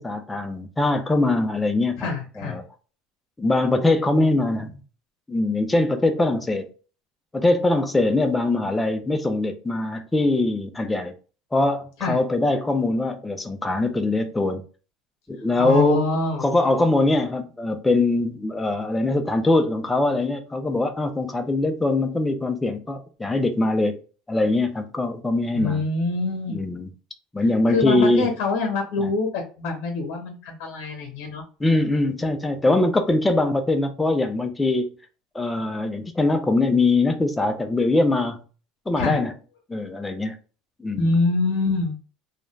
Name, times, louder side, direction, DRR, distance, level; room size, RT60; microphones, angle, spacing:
voice 1, 0.0-2.1 2.4-2.6 3.4-4.8 5.3-6.7 7.3-11.1 11.5-14.6 15.3-16.1 16.4-24.0 24.3-25.8 26.5-26.9 27.3-28.4 29.0-29.1 31.6-34.9 35.3-38.4 38.9-39.3 39.7-40.4 40.8-41.1, left 2 dB, 10° left, 0.4 m, -22 dB
voice 2, 2.0-2.6 12.0-12.2 15.6-16.4 25.5-26.6 27.7-31.4 39.0-39.2 41.0-41.9, left 3 dB, 75° left, 0.8 m, -25 dB
2.4 x 2.1 x 3.1 m
cardioid pair, 145°, 0 cm